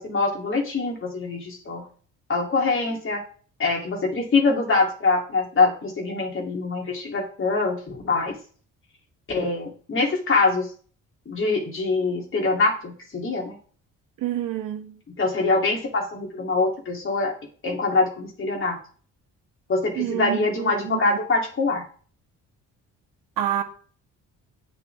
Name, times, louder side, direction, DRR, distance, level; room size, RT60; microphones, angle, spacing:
voice 1, 0.0-1.8 2.3-3.2 3.6-8.4 9.3-10.7 11.3-13.6 15.2-17.3 17.6-18.8 19.7-21.8, left 3 dB, 40° left, 4.0 m, -24 dB
voice 2, 14.2-15.0 20.0-21.2 23.4-23.6, right 12 dB, 90° right, 1.9 m, -28 dB
9.8 x 8.1 x 3.9 m
cardioid pair, 100°, 32 cm